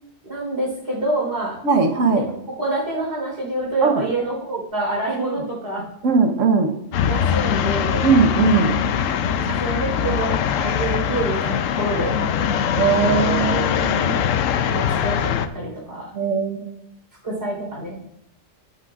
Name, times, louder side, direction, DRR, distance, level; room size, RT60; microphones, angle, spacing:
voice 1, 0.2-1.6 2.1-5.8 7.0-8.0 9.2-12.1 13.9-14.0 14.7-16.1 17.2-18.2, right 2 dB, 55° right, -3 dB, 4.3 m, -27 dB
voice 2, 1.6-2.3 3.8-4.0 6.0-6.7 8.0-8.8 12.8-14.1 16.1-16.7, right 5 dB, 75° right, 4 dB, 1.4 m, -19 dB
sound 1, 6.9-15.5, left 8 dB, 85° left, 1.0 m, -22 dB
14.0 x 8.2 x 2.5 m, 0.78 s
omnidirectional pair, 1.3 m